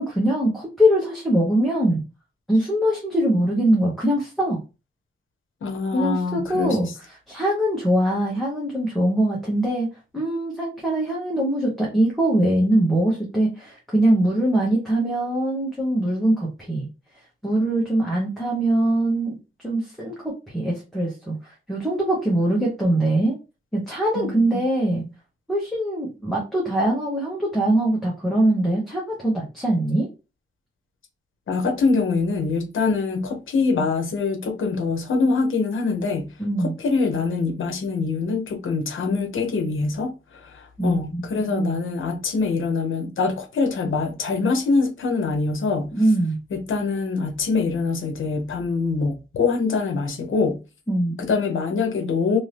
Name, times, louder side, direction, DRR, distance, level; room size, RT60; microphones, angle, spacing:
voice 1, 0.0-2.0 2.5-4.6 5.9-6.9 7.3-16.9 17.4-19.4 19.6-23.4 23.7-25.0 25.5-30.1 36.4-36.7 40.8-41.7 45.9-46.4 50.9-51.2, right 1 dB, ahead, 0.9 m, -22 dB
voice 2, 5.6-6.9 24.1-25.0 31.5-36.3 36.6-45.9 46.5-50.6 51.2-52.4, left 4 dB, 70° left, 0.8 m, -24 dB
2.6 x 2.6 x 3.3 m
wide cardioid pair, 155°, 21 cm